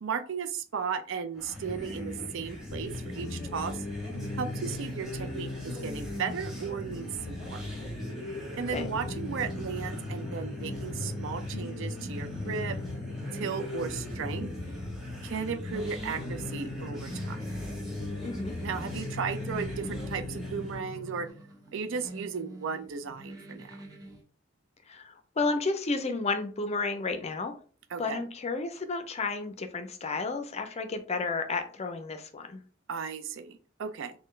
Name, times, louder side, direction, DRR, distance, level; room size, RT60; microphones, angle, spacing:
voice 1, 0.0-3.8 4.4-7.6 8.6-12.8 13.3-14.5 15.2-17.4 18.6-21.3 21.7-23.8 27.9-28.2 32.9-34.1, right 6 dB, 65° right, 8 dB, 0.5 m, -35 dB
sound 1, 1.3-20.8, left 1 dB, ahead, 1.3 m, -38 dB
sound 2, 2.7-21.3, left 3 dB, 90° left, 0.5 m, -42 dB
sound 3, 7.7-24.2, right 2 dB, 20° right, 0.8 m, -48 dB
voice 2, 18.2-18.5 24.9-27.6 28.0-32.6, left 3 dB, 30° left, 7 dB, 0.5 m, -32 dB
4.3 x 2.2 x 3.1 m, 0.41 s
head